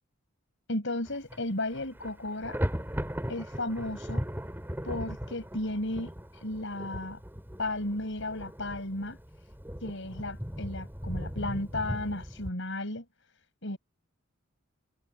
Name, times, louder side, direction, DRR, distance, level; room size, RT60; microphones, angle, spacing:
voice 1, 0.7-2.6 3.3-4.2 4.8-6.1 6.4-7.2 7.6-9.2 9.8-13.0 13.6-13.8, left 1 dB, 60° left, 5.9 m, -34 dB
Thunder, 1.1-1.4 1.7-12.5, equal, 10° right, 3.3 m, -38 dB
head